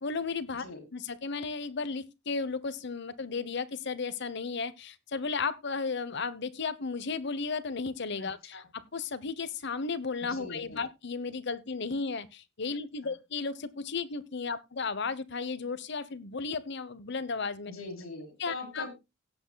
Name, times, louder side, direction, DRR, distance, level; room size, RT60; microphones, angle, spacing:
voice 1, 0.0-0.7 0.9-17.7 18.4-18.9, left 4 dB, 60° left, 15 dB, 0.9 m, -34 dB
voice 2, 8.2-8.6 10.4-10.8 17.6-18.9, left 2 dB, 90° left, 5 dB, 4.0 m, -42 dB
17.5 x 8.1 x 2.2 m, 0.24 s
head